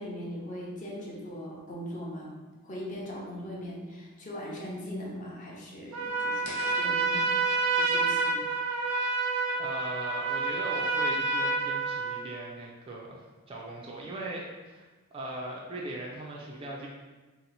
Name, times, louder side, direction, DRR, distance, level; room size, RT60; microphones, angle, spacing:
voice 1, 0.0-2.3 2.6-7.3 7.7-8.4, equal, 35° left, -4 dB, 0.6 m, -40 dB
Trumpet, 5.9-12.4, right 3 dB, 90° right, 0.5 m, -28 dB
sound 1, 6.4-9.5, left 1 dB, 70° left, 0.7 m, -48 dB
voice 2, 9.6-16.9, right 1 dB, 25° right, -2 dB, 0.3 m, -39 dB
2.8 x 2.0 x 3.9 m, 1.3 s
head